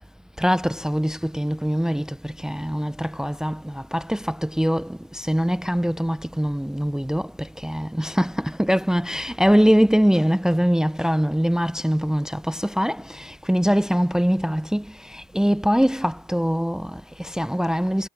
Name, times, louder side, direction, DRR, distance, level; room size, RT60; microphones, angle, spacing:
voice 1, 0.4-18.1, equal, 5° right, 0.7 m, -23 dB
cardioid pair, 90°, 20 cm